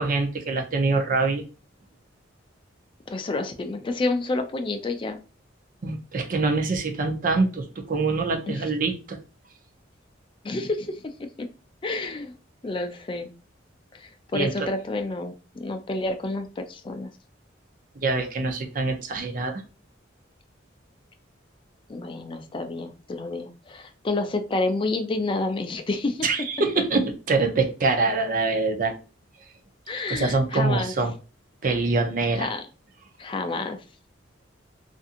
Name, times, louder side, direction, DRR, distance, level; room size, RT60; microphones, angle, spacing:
voice 1, 0.0-1.4 5.8-9.2 14.3-14.7 18.0-19.6 26.2-28.9 30.1-31.1 31.6-32.5, right 3 dB, 45° right, 4 dB, 0.5 m, -24 dB
voice 2, 3.1-5.2 8.5-8.6 10.4-11.5 11.8-12.3 12.6-13.3 13.9-17.1 21.9-26.3 29.9-30.9 32.3-32.6 33.2-33.8, left 2 dB, 25° left, 6 dB, 0.3 m, -29 dB
2.7 x 2.5 x 2.4 m, 0.33 s
head